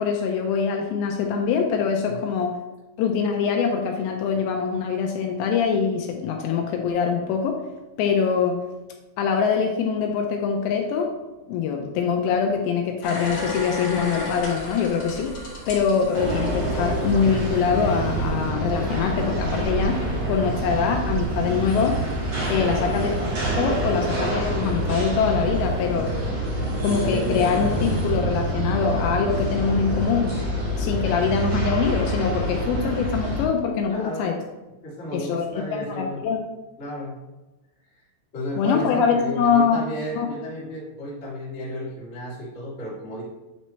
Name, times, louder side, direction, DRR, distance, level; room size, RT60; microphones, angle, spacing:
voice 1, 0.0-2.5 3.0-7.6 8.0-8.6 9.2-11.1 11.5-15.3 15.7-20.0 20.3-22.0 22.5-23.1 23.6-26.1 26.8-30.4 30.8-34.3 35.1-36.4 38.6-39.8 40.2-40.3, left 6 dB, 80° left, 3 dB, 2.7 m, -23 dB
sound 1, 13.0-17.4 17.8-17.9, left 3 dB, 60° left, 1.3 m, -33 dB
Bird vocalization bird call bird song, 13.2-26.5, right 4 dB, 80° right, 2.5 m, -37 dB
sound 2, 16.1-33.4, right 1 dB, 55° right, 2.4 m, -26 dB
voice 2, 22.6-22.9 33.9-34.3 34.8-36.2 36.8-37.2 38.3-43.2, left 1 dB, 30° left, -8 dB, 1.2 m, -33 dB
9.2 x 4.3 x 3.1 m, 1.1 s
omnidirectional pair, 5.4 m